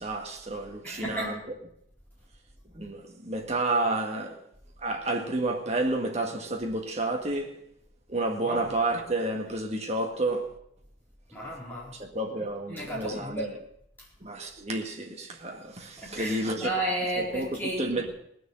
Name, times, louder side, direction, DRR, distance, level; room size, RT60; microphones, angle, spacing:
voice 1, 0.0-1.4 2.7-4.4 4.8-7.6 8.1-10.5 11.9-13.6 14.2-16.7 17.2-17.5 17.8-18.1, right 2 dB, 35° right, 1.9 m, -30 dB
voice 2, 0.8-1.4 8.4-8.6 11.3-11.9 12.7-13.5 14.0-14.1 16.0-18.1, right 1 dB, 10° left, 4.4 m, -33 dB
18.5 x 6.4 x 7.5 m
head